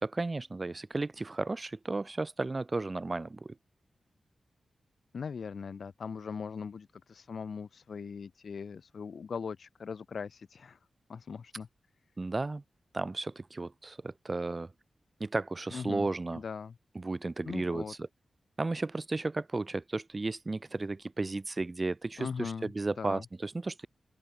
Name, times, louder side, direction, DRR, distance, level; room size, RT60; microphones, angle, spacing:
voice 1, 0.0-3.6 12.2-12.6 12.9-14.7 15.2-16.4 16.9-18.1 18.6-23.9, right 3 dB, 40° right, 0.5 m, -34 dB
voice 2, 5.1-10.8 11.1-11.7 15.7-16.1 16.3-16.7 17.4-17.9 22.2-22.7 23.0-23.2, left 6 dB, 70° left, 2.0 m, -40 dB
open air
cardioid pair, 45°, 0 cm